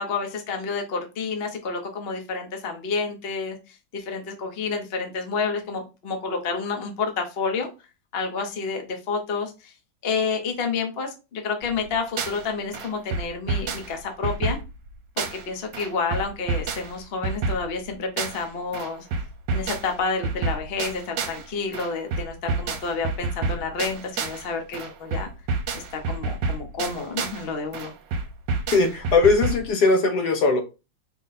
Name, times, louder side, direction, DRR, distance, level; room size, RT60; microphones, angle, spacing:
voice 1, 0.0-3.6 3.9-7.7 8.1-9.5 10.0-14.6 15.2-19.0 19.5-25.3 25.7-27.9, left 4 dB, 50° left, 0.7 m, -29 dB
sound 1, 11.6-12.5 12.7-15.5 15.7-18.5 18.7-21.5 21.7-24.5 24.7-27.5 27.7-29.7, right 3 dB, 75° right, 1.4 m, -29 dB
voice 2, 28.7-30.6, left 3 dB, 65° left, 1.2 m, -19 dB
5.0 x 2.1 x 4.0 m
omnidirectional pair, 2.1 m